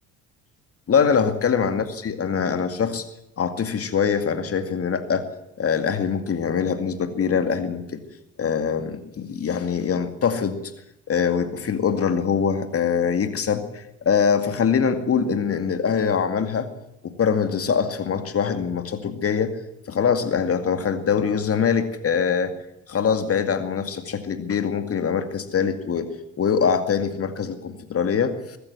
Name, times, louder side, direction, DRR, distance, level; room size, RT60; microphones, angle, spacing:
voice 1, 0.9-3.1 3.4-5.3 5.6-8.0 8.4-10.6 11.1-16.7 17.0-19.6 19.9-22.5 22.9-26.1 26.4-28.6, left 6 dB, 40° left, 8 dB, 2.3 m, -23 dB
23.0 x 13.0 x 9.7 m, 0.85 s
hypercardioid pair, 55°, 38 cm